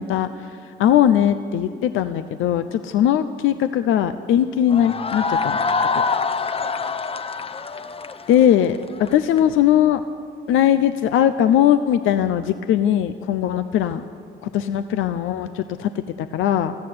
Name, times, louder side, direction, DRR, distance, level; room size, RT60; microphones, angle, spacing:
voice 1, 0.0-5.6 5.9-6.0 8.3-10.0 10.5-14.0 14.4-16.8, left 10 dB, 85° left, 11 dB, 0.7 m, -20 dB
sound 1, 4.7-9.4, left 4 dB, 30° left, 0.8 m, -25 dB
19.0 x 14.5 x 9.6 m, 2.6 s
cardioid pair, 90°, 20 cm